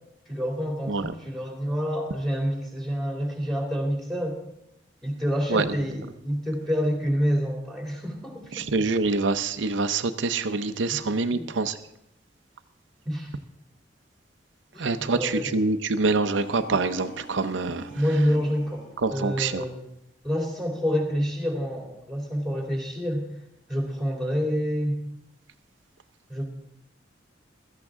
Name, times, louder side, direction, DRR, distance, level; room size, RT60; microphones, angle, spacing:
voice 1, 0.3-4.4 5.0-8.7 11.3-11.5 13.1-13.3 14.7-15.5 17.9-19.8 20.2-23.3 23.7-25.0 26.3-26.5, equal, ahead, 1 dB, 2.5 m, -28 dB
voice 2, 8.5-11.8 14.8-17.9 19.0-19.6, right 3 dB, 90° right, 9 dB, 0.7 m, -25 dB
sound 1, 16.0-19.0, left 1 dB, 55° left, 3.2 m, -44 dB
16.5 x 13.5 x 3.7 m, 0.79 s
head